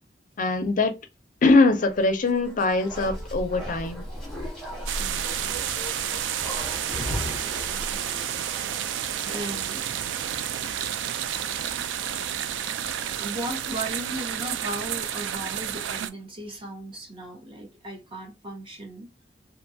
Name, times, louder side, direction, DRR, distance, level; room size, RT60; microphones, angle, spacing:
voice 1, 0.4-0.9 1.4-4.0, left 3 dB, 45° left, 0.4 m, -22 dB
Bark, 2.2-9.8 10.1-10.2, equal, ahead, 1.0 m, -36 dB
sound 1, 4.9-16.1, right 10 dB, 85° right, 0.3 m, -30 dB
voice 2, 5.0-5.6 7.8-8.5 9.3-9.8 12.7-19.1, right 1 dB, 30° right, 0.8 m, -37 dB
2.7 x 2.2 x 2.6 m
head